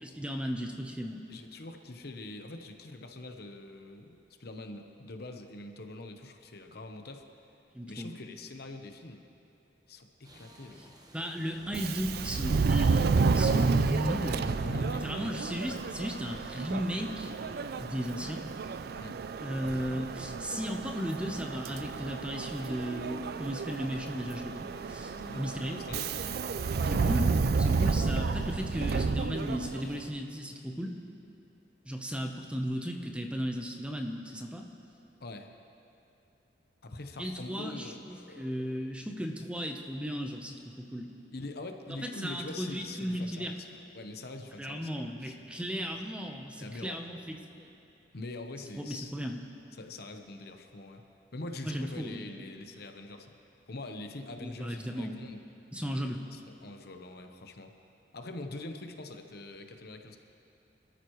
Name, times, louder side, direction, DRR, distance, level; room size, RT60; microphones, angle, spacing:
voice 1, 0.0-1.2 7.7-8.1 11.1-14.4 15.0-17.3 17.8-18.5 19.4-25.8 26.8-31.0 31.8-34.7 37.2-41.1 41.9-43.5 44.6-47.7 48.7-49.4 51.6-52.5 54.4-55.3 55.7-56.2, equal, 5° right, 3 dB, 0.8 m, -35 dB
voice 2, 1.3-7.3 7.9-9.2 9.9-10.9 13.5-13.8 14.4-15.5 19.0-19.2 25.1-26.4 35.2-35.5 36.8-38.5 41.3-45.9 46.6-47.2 48.1-49.1 49.7-51.0 51.3-53.3 53.7-55.4 56.3-57.7 58.1-60.2, left 2 dB, 60° left, 5 dB, 1.0 m, -44 dB
sound 1, 10.2-30.1, right 1 dB, 20° right, 1.2 m, -56 dB
Subway metro underground, 11.7-30.0, right 4 dB, 60° right, 0.4 m, -31 dB
26.0 x 13.5 x 3.1 m, 2.8 s
head